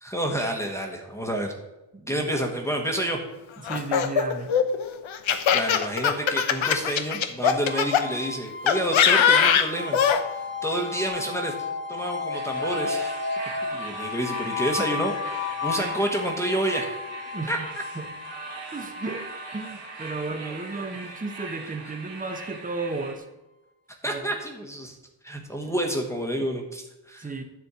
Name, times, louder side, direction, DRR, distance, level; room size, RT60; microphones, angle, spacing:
voice 1, 0.0-1.5 2.1-3.2 5.5-11.5 11.9-13.1 13.7-17.0 17.5-17.6 20.3-20.9 23.9-25.0 25.2-27.3, right 1 dB, 5° left, 0 dB, 1.2 m, -29 dB
voice 2, 1.9-2.3 3.6-4.5 17.3-18.2 18.7-23.3 24.0-24.3 27.2-27.4, right 3 dB, 20° right, 6 dB, 0.9 m, -34 dB
Laughter, 3.7-8.0 8.7-10.2, left 8 dB, 90° left, 0.9 m, -21 dB
sound 1, 7.6-22.6, left 4 dB, 25° left, 1.1 m, -34 dB
sound 2, 12.3-23.2, right 3 dB, 75° right, 1.9 m, -40 dB
11.0 x 4.4 x 8.1 m, 0.99 s
wide cardioid pair, 150°, 45 cm